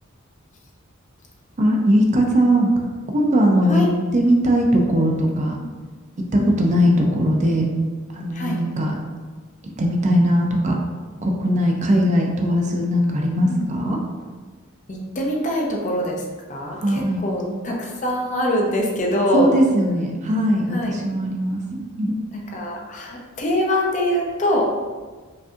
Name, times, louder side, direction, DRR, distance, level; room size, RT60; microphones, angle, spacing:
voice 1, 1.6-2.7 3.1-3.8 4.1-5.5 6.3-7.7 8.1-9.0 9.6-10.8 11.2-14.0 16.7-17.2 19.3-22.2, equal, 35° right, 1 dB, 0.4 m, -19 dB
voice 2, 14.9-16.2 16.5-19.5 20.7-20.9 22.3-24.7, left 1 dB, 35° left, -1 dB, 0.6 m, -24 dB
4.9 x 2.6 x 2.4 m, 1.4 s
head